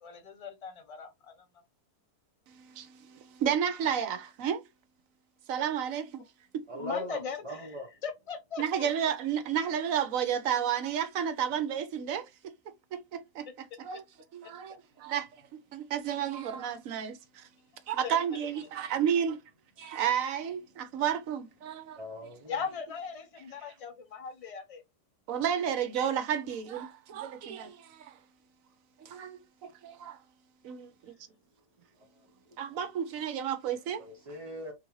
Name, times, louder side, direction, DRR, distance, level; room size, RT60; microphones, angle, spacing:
voice 1, 0.0-1.5 6.8-9.2 14.4-14.5 18.0-18.2 22.4-24.8, left 6 dB, 40° left, 0.5 m, -39 dB
voice 2, 2.5-4.6 5.5-6.2 8.6-12.3 12.9-13.4 13.8-14.0 14.3-17.5 17.9-19.4 19.8-22.0 25.3-28.2 29.0-30.2 30.6-31.1 32.6-34.0, right 8 dB, 70° right, 0.9 m, -32 dB
voice 3, 6.7-7.9 22.0-22.5 34.0-34.7, left 1 dB, 40° right, 0.5 m, -39 dB
3.7 x 2.5 x 3.0 m
omnidirectional pair, 1.7 m